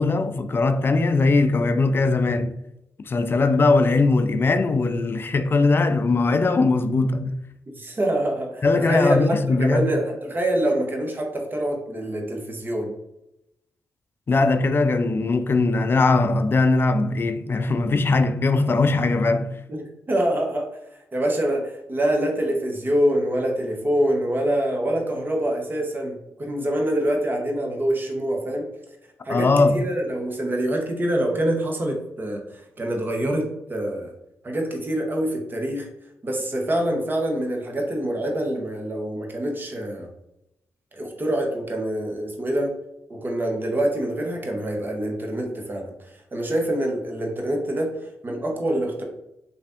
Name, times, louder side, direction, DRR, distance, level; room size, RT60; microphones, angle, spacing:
voice 1, 0.0-2.5 3.1-7.4 8.6-9.9 14.3-19.5 29.3-29.8, left 3 dB, 40° left, 0.3 m, -20 dB
voice 2, 7.7-12.9 19.7-20.7 21.1-28.6 29.2-34.1 34.4-35.9 36.2-40.1 40.9-42.7 43.1-45.9 46.3-49.0, right 1 dB, 35° right, 0.9 m, -25 dB
3.2 x 2.5 x 2.5 m
supercardioid pair, 50°, 6 cm